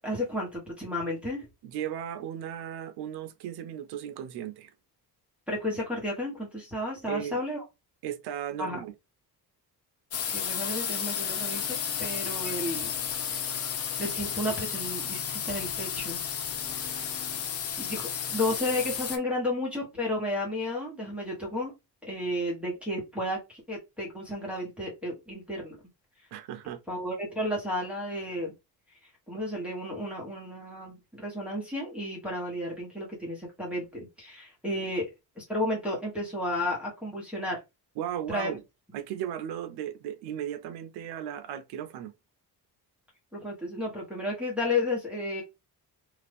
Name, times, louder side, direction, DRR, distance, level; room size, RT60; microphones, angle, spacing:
voice 1, 0.0-1.5 5.5-7.6 8.6-8.8 10.3-12.9 13.3-13.4 14.0-16.2 16.8-17.1 17.8-21.7 22.0-25.8 26.9-28.5 29.3-35.1 35.4-37.6 38.3-38.5 43.3-45.4, left 1 dB, 5° right, 1.1 m, -32 dB
voice 2, 1.6-4.7 7.1-7.4 8.0-8.9 26.3-26.8 38.0-38.6 38.9-42.1, right 10 dB, 80° right, 0.6 m, -36 dB
sound 1, 10.1-19.2, left 8 dB, 40° left, 0.5 m, -32 dB
2.8 x 2.5 x 3.3 m
cardioid pair, 160°, 39 cm